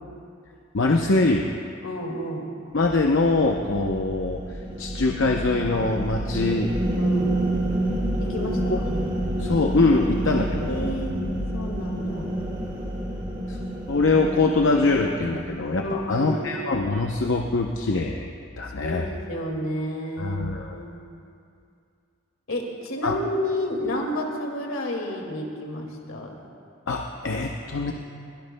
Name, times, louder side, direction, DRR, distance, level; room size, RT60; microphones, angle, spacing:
voice 1, 0.7-1.5 2.7-4.4 4.8-6.7 8.7-8.8 9.4-10.9 13.5-13.6 13.9-18.3 18.6-19.1 20.2-20.8 23.0-23.1 26.9-27.9, left 3 dB, 70° left, 1 dB, 0.7 m, -23 dB
voice 2, 1.8-2.5 7.0-7.4 8.2-8.8 10.6-11.2 11.5-12.4 15.8-16.6 18.7-20.4 20.7-21.0 22.5-26.3, left 1 dB, 85° left, 1 dB, 2.1 m, -31 dB
sound 1, 2.8-16.4, right 1 dB, 25° right, 2.5 m, -29 dB
22.0 x 17.5 x 2.2 m, 2.4 s
head